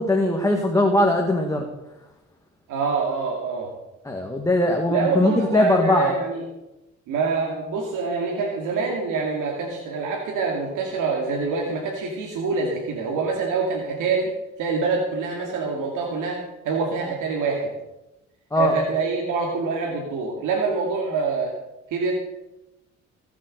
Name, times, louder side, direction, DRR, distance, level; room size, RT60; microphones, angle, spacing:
voice 1, 0.0-1.7 4.1-6.1 18.5-18.7, left 1 dB, 10° left, 1 dB, 1.9 m, -20 dB
voice 2, 2.7-3.7 4.9-6.4 7.1-14.3 14.6-17.7 18.5-21.5 21.9-22.1, right 4 dB, 85° right, -1 dB, 2.5 m, -25 dB
18.5 x 7.7 x 6.7 m, 0.95 s
cardioid pair, 90°, 30 cm